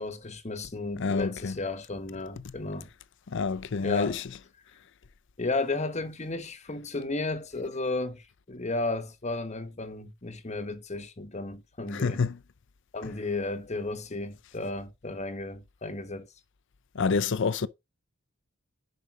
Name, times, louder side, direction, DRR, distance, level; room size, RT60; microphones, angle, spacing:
voice 1, 0.0-2.9 3.8-4.2 5.4-12.2 12.9-16.3, left 3 dB, 35° left, 1.2 m, -33 dB
voice 2, 1.0-1.6 3.3-4.2 11.9-12.4 16.9-17.7, left 4 dB, 60° left, 0.6 m, -27 dB
11.0 x 5.1 x 5.0 m
head